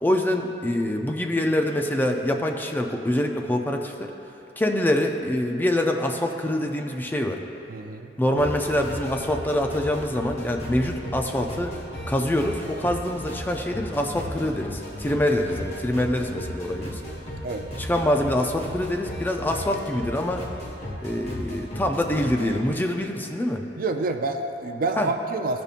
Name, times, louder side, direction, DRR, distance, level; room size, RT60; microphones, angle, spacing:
voice 1, 0.0-4.1 4.6-7.4 8.2-11.7 12.1-17.0 17.8-20.5 21.0-23.6 25.0-25.1, left 1 dB, 10° left, 3 dB, 0.4 m, -25 dB
voice 2, 7.7-8.1 17.4-17.7 23.8-25.6, right 3 dB, 50° right, 6 dB, 0.4 m, -28 dB
sound 1, 8.4-22.6, equal, 40° left, 1.4 m, -35 dB
15.0 x 5.2 x 2.5 m, 2.9 s
head